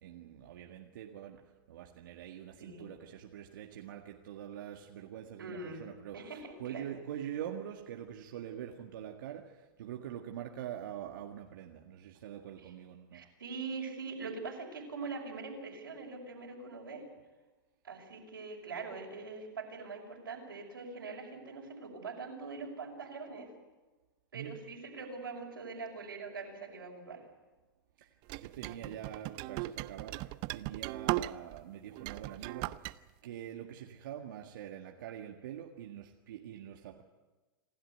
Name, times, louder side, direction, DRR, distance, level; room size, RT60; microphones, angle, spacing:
voice 1, 0.0-1.4 1.7-6.2 6.6-9.5 9.8-13.2 24.3-24.6 28.0-28.1 28.4-32.9 33.2-37.0, right 10 dB, 65° right, 1 dB, 1.9 m, -44 dB
voice 2, 2.6-2.9 5.4-5.8 6.1-6.9 12.6-12.7 13.1-17.0 17.8-23.5 24.3-27.2 28.7-28.9, right 4 dB, 90° right, -1 dB, 5.9 m, -43 dB
sound 1, 28.3-31.6 32.0-32.9, right 18 dB, 40° right, 0.6 m, -37 dB
27.0 x 12.5 x 9.4 m, 1.2 s
hypercardioid pair, 115°, 11 cm